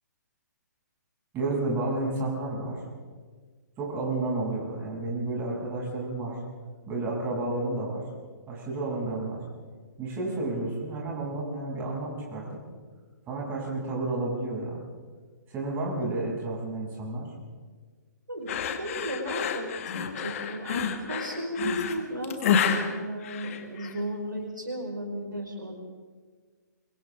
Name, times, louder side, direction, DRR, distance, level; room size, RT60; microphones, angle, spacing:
voice 1, 1.3-2.8 3.8-6.4 6.9-8.0 8.5-9.4 10.0-12.6 13.3-14.8 15.5-17.3, right 2 dB, 20° right, -4 dB, 7.9 m, -31 dB
voice 2, 18.3-22.4 22.8-25.7, equal, 90° right, 0 dB, 4.9 m, -34 dB
sound 1, 18.5-24.0, left 7 dB, 45° left, 2.1 m, -29 dB
28.5 x 24.0 x 3.8 m, 1.5 s
figure-of-eight pair, 125°, 10 cm